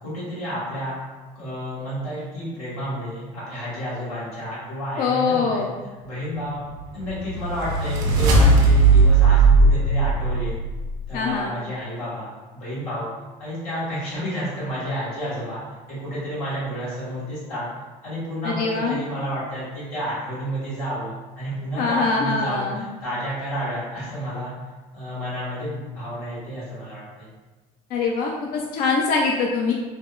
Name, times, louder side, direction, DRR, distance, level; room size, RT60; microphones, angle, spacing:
voice 1, 0.0-0.9 1.3-5.6 6.0-6.7 6.9-10.6 11.1-13.1 13.4-15.6 15.9-17.7 18.0-24.5 24.9-27.3, equal, 90° left, -10 dB, 1.4 m, -30 dB
voice 2, 5.0-5.7 11.1-11.5 18.4-19.0 21.8-22.8 27.9-29.7, left 4 dB, 50° left, 0 dB, 0.4 m, -23 dB
sound 1, 6.8-11.0, right 3 dB, 70° right, 0.6 m, -17 dB
3.3 x 2.0 x 2.3 m, 1.3 s
hypercardioid pair, 75°, 19 cm